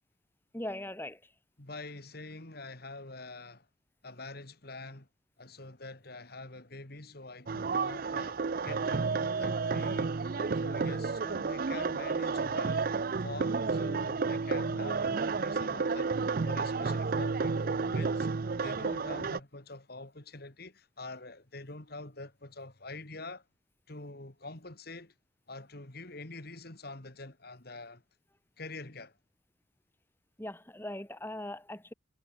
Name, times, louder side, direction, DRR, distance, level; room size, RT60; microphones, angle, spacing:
voice 1, 0.5-1.2 30.4-31.9, left 1 dB, 10° left, 2.7 m, -40 dB
voice 2, 1.6-3.7 4.0-5.1 5.4-12.9 13.2-16.1 16.4-18.3 18.6-23.4 23.9-25.1 25.5-28.0 28.6-29.2, left 2 dB, 50° left, 2.5 m, -45 dB
sound 1, 7.5-19.4, right 4 dB, 45° right, 0.5 m, -31 dB
head